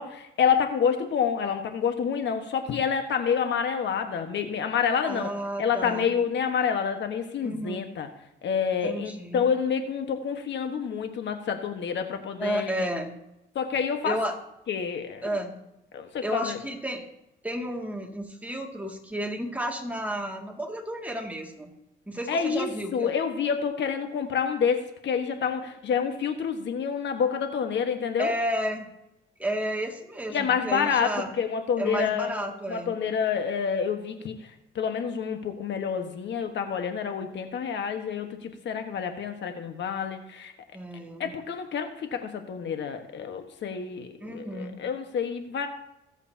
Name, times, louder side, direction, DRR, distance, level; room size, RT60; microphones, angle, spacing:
voice 1, 0.0-5.3 5.6-8.1 8.4-12.8 13.5-14.2 14.7-15.3 15.9-16.6 22.3-22.7 22.9-28.3 30.3-34.3 34.7-40.5 41.2-45.7, left 7 dB, 65° left, 6 dB, 1.4 m, -28 dB
voice 2, 5.0-6.1 7.4-7.8 8.8-9.4 12.4-13.2 14.0-14.3 15.2-15.6 16.2-17.0 17.4-21.7 22.1-23.1 28.2-28.9 29.4-31.3 31.8-32.9 40.7-41.3 44.2-44.8, equal, 5° right, 1 dB, 2.3 m, -32 dB
24.0 x 8.1 x 2.8 m, 0.88 s
cardioid pair, 90°, 20 cm